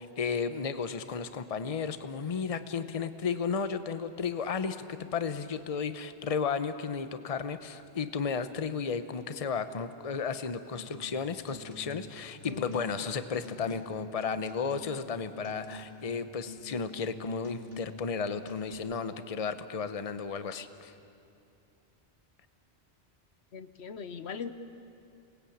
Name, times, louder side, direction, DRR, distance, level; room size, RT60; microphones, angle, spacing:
voice 1, 0.0-20.9, left 5 dB, 35° left, 11 dB, 0.9 m, -33 dB
sound 1, 10.7-11.1 11.4-12.1 12.4-13.1 13.4-14.1 14.4-15.1 15.4-16.1 16.5-17.1 17.4-18.1 18.5-18.7, left 2 dB, 60° left, 3.1 m, -46 dB
voice 2, 12.5-12.8 23.5-24.5, left 5 dB, 80° left, 11 dB, 1.2 m, -40 dB
27.5 x 19.5 x 8.7 m, 2.6 s
omnidirectional pair, 1.1 m